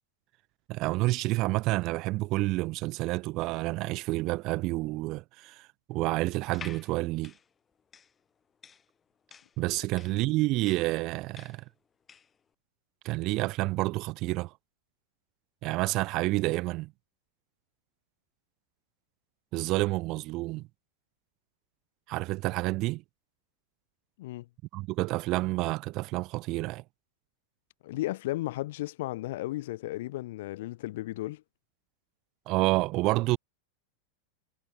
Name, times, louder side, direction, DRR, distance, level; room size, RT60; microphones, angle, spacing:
voice 1, 0.7-7.3 9.6-11.6 13.0-14.5 15.6-16.9 19.5-20.6 22.1-23.0 24.7-26.8 32.5-33.4, right 20 dB, 40° right, 1.0 m, -29 dB
sound 1, 6.4-12.4, left 7 dB, 20° left, 7.8 m, -50 dB
voice 2, 27.8-31.4, left 17 dB, 55° left, 3.2 m, -34 dB
figure-of-eight pair, 90°, 0 cm